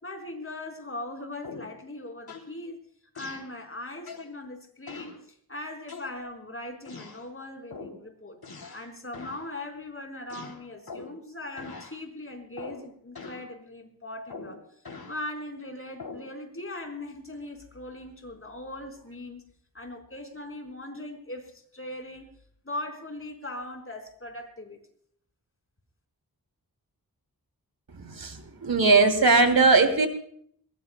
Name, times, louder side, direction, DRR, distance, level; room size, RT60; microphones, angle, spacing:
voice 1, 0.0-2.8 3.1-5.1 5.5-8.4 8.7-14.6 15.1-19.4 19.7-22.3 22.6-24.8, left 1 dB, 35° left, 3 dB, 4.4 m, -39 dB
sound 1, 1.4-1.8 2.3-2.5 3.2-3.5 4.1-4.3 4.9-5.2 5.9-6.4 6.9-7.2 7.7-8.0 8.4-8.9 9.1-9.5 10.3-11.2 11.6-12.0 12.6-12.9 13.2-13.5 14.3-15.2 16.0-16.3, left 4 dB, 85° left, 3.2 m, -42 dB
voice 2, 27.9-30.1, right 3 dB, 75° right, 6 dB, 3.0 m, -20 dB
22.5 x 21.5 x 2.3 m, 0.62 s
wide cardioid pair, 90°, 36 cm